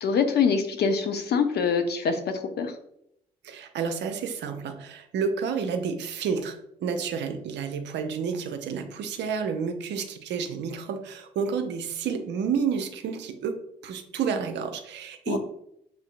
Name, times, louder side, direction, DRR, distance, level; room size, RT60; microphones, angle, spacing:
voice 1, 0.0-2.8 15.3-15.4, left 5 dB, 50° left, 6 dB, 0.7 m, -24 dB
voice 2, 3.4-15.4, right 6 dB, 60° right, 7 dB, 0.6 m, -30 dB
6.9 x 2.7 x 2.5 m, 0.76 s
figure-of-eight pair, 40°, 21 cm